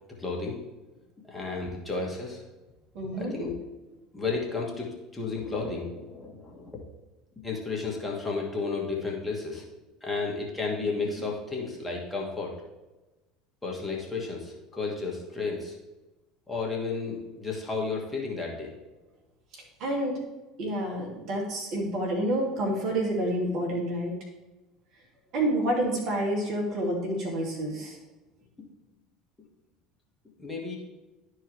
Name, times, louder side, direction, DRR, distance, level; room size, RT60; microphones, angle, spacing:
voice 1, 0.2-0.6 1.3-2.4 3.1-3.5 4.1-6.8 7.4-9.6 10.0-12.5 13.6-15.8 16.5-18.7 30.4-30.8, left 4 dB, 15° left, -2 dB, 2.2 m, -32 dB
voice 2, 2.9-3.4 19.5-20.2 20.6-24.1 25.3-28.0, right 1 dB, 55° right, -1 dB, 2.5 m, -29 dB
12.5 x 4.7 x 3.3 m, 1.1 s
hypercardioid pair, 70°, 0 cm